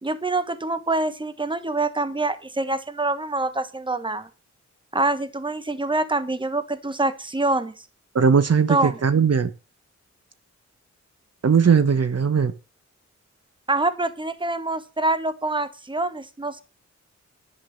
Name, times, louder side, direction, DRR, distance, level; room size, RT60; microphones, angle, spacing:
voice 1, 0.0-4.3 4.9-7.7 8.7-9.0 13.7-16.6, right 2 dB, 15° right, 12 dB, 1.3 m, -25 dB
voice 2, 8.1-9.5 11.4-12.5, right 6 dB, 55° right, 12 dB, 1.1 m, -19 dB
11.0 x 7.9 x 6.6 m, 0.32 s
wide cardioid pair, 80°, 29 cm